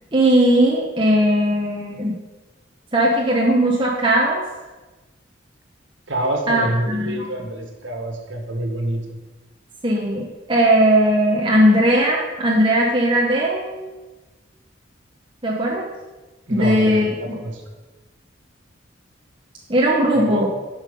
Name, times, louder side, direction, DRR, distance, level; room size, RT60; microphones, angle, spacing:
voice 1, 0.1-2.1 2.9-4.4 6.5-7.2 9.8-13.9 15.4-15.9 16.5-17.3 19.7-20.5, right 1 dB, 25° right, -3 dB, 1.0 m, -18 dB
voice 2, 6.1-9.2 16.5-17.6 20.1-20.5, right 1 dB, 75° right, 3 dB, 1.7 m, -26 dB
10.5 x 5.8 x 5.3 m, 1.2 s
head